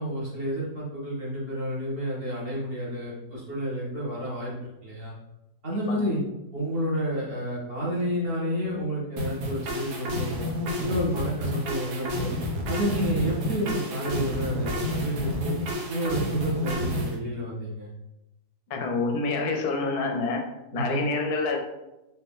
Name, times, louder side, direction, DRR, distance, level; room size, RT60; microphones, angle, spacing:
voice 1, 0.0-4.5 4.8-5.1 5.6-6.2 6.5-10.5 10.8-12.3 12.7-15.5 15.9-17.9 20.7-21.1, equal, 40° right, -6 dB, 1.3 m, -30 dB
sound 1, 9.2-17.1, left 1 dB, 80° right, 1.4 m, -30 dB
voice 2, 18.7-20.4 20.7-21.6, left 3 dB, 80° left, 4 dB, 1.2 m, -27 dB
4.2 x 2.8 x 3.6 m, 0.95 s
omnidirectional pair, 1.7 m